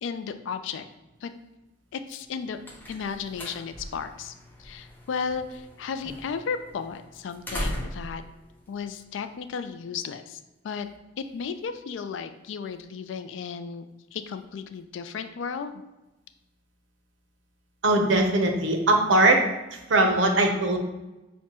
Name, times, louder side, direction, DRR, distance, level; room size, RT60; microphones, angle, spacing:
voice 1, 0.0-0.9 1.2-1.3 1.9-2.6 2.9-4.3 4.6-8.2 8.7-10.4 10.6-10.9 11.2-15.7, left 6 dB, 70° left, 10 dB, 0.3 m, -34 dB
sound 1, 2.2-9.6, equal, 10° left, 0.6 m, -40 dB
voice 2, 17.8-19.4 19.7-20.8, right 2 dB, 70° right, 3 dB, 0.6 m, -21 dB
5.8 x 2.1 x 2.9 m, 1.0 s
head